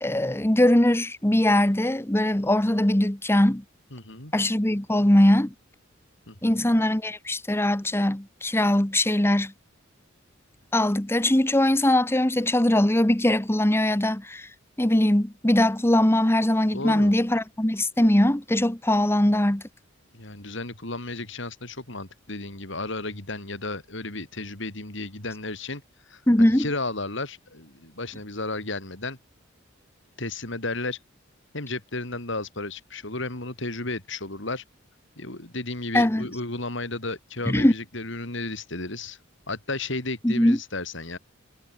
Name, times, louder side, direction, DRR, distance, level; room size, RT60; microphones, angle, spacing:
voice 1, 0.0-3.6 4.3-5.5 6.4-9.5 10.7-14.5 14.8-19.6 26.3-26.7 35.9-36.2 37.5-37.7 40.2-40.6, left 1 dB, 10° left, 1.1 m, -21 dB
voice 2, 3.9-4.3 6.3-6.7 16.7-17.1 20.1-25.8 26.1-29.2 30.2-31.0 31.5-34.6 35.2-39.2 39.5-41.2, left 2 dB, 65° left, 4.6 m, -33 dB
head